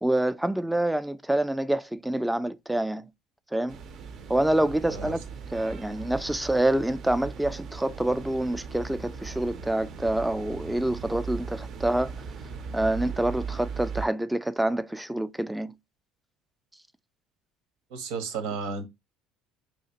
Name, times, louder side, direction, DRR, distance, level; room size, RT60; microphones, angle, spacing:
voice 1, 0.0-3.1 3.5-3.8 4.3-5.2 5.5-12.1 12.7-15.7, right 1 dB, 5° right, 0.3 m, -27 dB
sound 1, 3.7-14.1, right 5 dB, 55° right, 0.5 m, -38 dB
voice 2, 17.9-18.9, right 4 dB, 85° right, 0.9 m, -33 dB
3.1 x 2.8 x 2.8 m
supercardioid pair, 100°, 0 cm